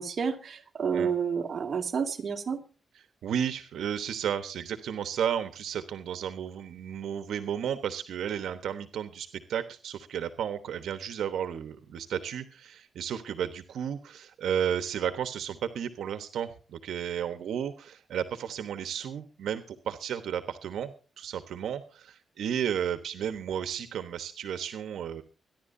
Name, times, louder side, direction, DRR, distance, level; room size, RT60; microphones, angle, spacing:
voice 1, 0.0-2.6, right 6 dB, 45° right, 3 dB, 2.3 m, -30 dB
voice 2, 2.9-25.2, right 9 dB, 85° right, 9 dB, 1.1 m, -33 dB
25.5 x 11.0 x 2.7 m, 0.36 s
cardioid pair, 130°, 0 cm